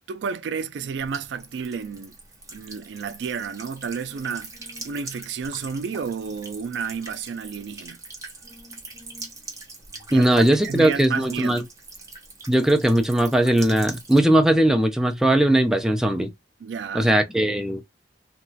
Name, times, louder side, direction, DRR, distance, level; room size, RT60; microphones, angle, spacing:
voice 1, 0.1-2.1 2.5-4.5 4.8-8.0 10.1-11.6 16.6-17.1, right 6 dB, 80° right, 0.3 m, -31 dB
Buzz / Water tap faucet / Trickle dribble, 1.0-14.2, right 3 dB, 20° right, 0.7 m, -42 dB
voice 2, 10.1-11.6 12.5-16.3 16.9-17.8, right 1 dB, 5° right, 0.3 m, -19 dB
2.9 x 2.2 x 2.7 m
head